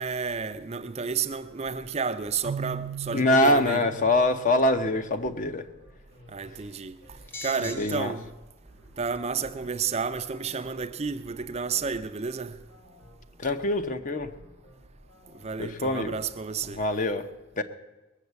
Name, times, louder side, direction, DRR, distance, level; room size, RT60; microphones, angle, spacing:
voice 1, 0.0-3.8 6.3-7.0 7.4-8.3 9.0-12.6 15.4-16.8, right 5 dB, 30° right, 0.5 m, -31 dB
sound 1, 1.3-17.1, equal, 85° left, 5.1 m, -54 dB
Keyboard (musical), 2.4-5.3, right 7 dB, 85° right, 0.5 m, -39 dB
voice 2, 3.1-5.6 7.6-8.1 13.4-14.3 15.6-16.2 16.7-17.3 17.6-17.7, left 1 dB, 40° left, 0.8 m, -24 dB
sound 2, 4.6-4.9 7.2-8.0 8.6-8.7 9.1-9.4, left 3 dB, 10° left, 0.9 m, -40 dB
20.0 x 7.3 x 8.1 m
head